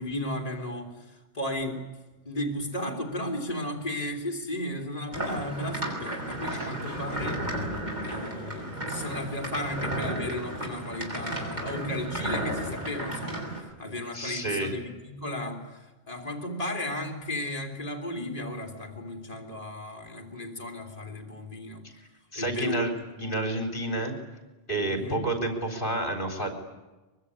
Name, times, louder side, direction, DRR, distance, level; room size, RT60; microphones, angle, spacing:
voice 1, 0.0-1.8 2.2-7.5 8.1-21.8 22.3-22.9 24.8-25.3, left 1 dB, 35° left, 3.0 m, -34 dB
sound 1, 5.1-13.6, right 1 dB, 45° right, 6.9 m, -33 dB
voice 2, 14.1-14.7 21.8-21.9 22.3-22.9 23.2-24.1 24.7-26.6, right 1 dB, 50° left, 4.1 m, -30 dB
23.5 x 22.5 x 9.8 m
omnidirectional pair, 1.1 m